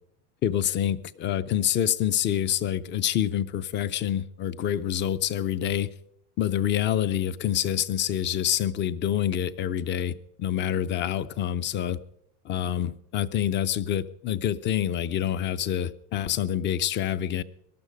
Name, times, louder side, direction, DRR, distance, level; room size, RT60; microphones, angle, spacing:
voice 1, 0.4-5.9 6.4-12.0 12.4-17.4, left 10 dB, 25° left, 17 dB, 0.5 m, -27 dB
19.5 x 12.0 x 5.2 m, 0.73 s
supercardioid pair, 135°, 46 cm